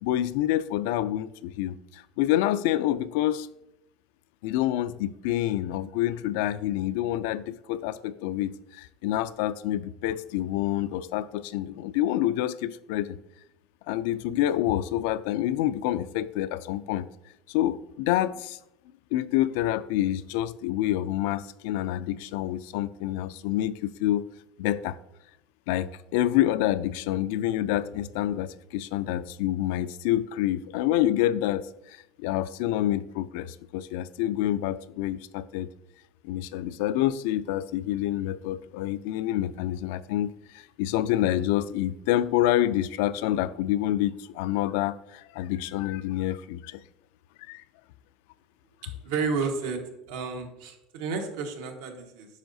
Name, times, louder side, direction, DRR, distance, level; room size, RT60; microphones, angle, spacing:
voice 1, 0.0-3.5 4.4-13.2 13.9-17.1 17.5-18.6 19.1-24.3 24.6-25.0 25.7-35.7 36.2-46.8 47.4-47.6, left 13 dB, 75° left, 0.3 m, -27 dB
voice 2, 49.0-49.8 50.1-52.3, right 4 dB, 85° right, 1.2 m, -31 dB
9.0 x 5.5 x 2.7 m
supercardioid pair, 140°, 0 cm